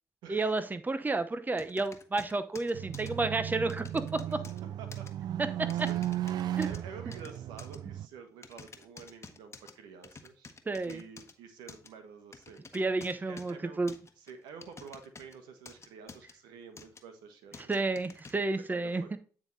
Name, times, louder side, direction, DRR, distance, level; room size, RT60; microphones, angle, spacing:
voice 1, 0.3-4.2 5.4-5.9 6.5-6.7 10.7-11.0 12.7-13.9 17.6-19.2, right 3 dB, 25° right, 12 dB, 0.8 m, -31 dB
sound 1, 1.6-3.1 3.7-4.6 4.9-5.1 5.7-6.8 7.1-7.8 8.4-9.7 10.0-11.3 11.7-11.9 12.3-13.5 13.9-15.4 15.7-16.3 16.8-17.0 17.5-18.3, left 4 dB, 40° left, 1.2 m, -50 dB
sound 2, 2.7-8.1, right 12 dB, 70° right, 0.3 m, -35 dB
voice 2, 5.5-6.3 6.6-10.5 10.8-12.6 13.3-13.8 14.2-17.7 18.5-19.2, right 6 dB, 85° right, 7 dB, 1.2 m, -49 dB
9.2 x 3.7 x 4.0 m, 0.41 s
supercardioid pair, 50°, 7 cm